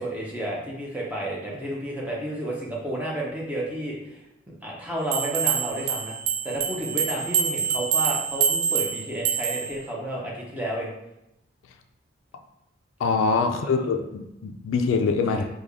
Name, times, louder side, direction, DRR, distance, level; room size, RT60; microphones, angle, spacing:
voice 1, 0.0-4.2 4.5-6.2 6.4-10.9 13.6-13.9 15.3-15.4, right 1 dB, 10° right, -4 dB, 0.6 m, -31 dB
sound 1, 5.1-9.8, right 7 dB, 75° right, 0.4 m, -26 dB
voice 2, 13.0-15.4, left 4 dB, 80° left, 6 dB, 0.3 m, -24 dB
3.4 x 2.2 x 3.5 m, 0.87 s
head